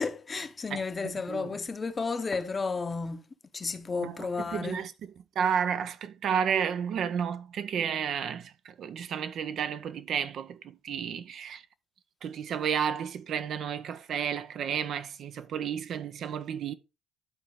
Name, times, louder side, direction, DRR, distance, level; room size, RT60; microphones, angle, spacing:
voice 1, 0.0-3.3 3.5-4.9, left 4 dB, 30° left, 0.8 m, -32 dB
voice 2, 0.7-1.5 4.0-4.1 4.5-4.9 5.4-11.6 12.2-16.7, right 7 dB, 55° right, 0.5 m, -32 dB
11.5 x 4.0 x 3.2 m
hypercardioid pair, 60°, 0 cm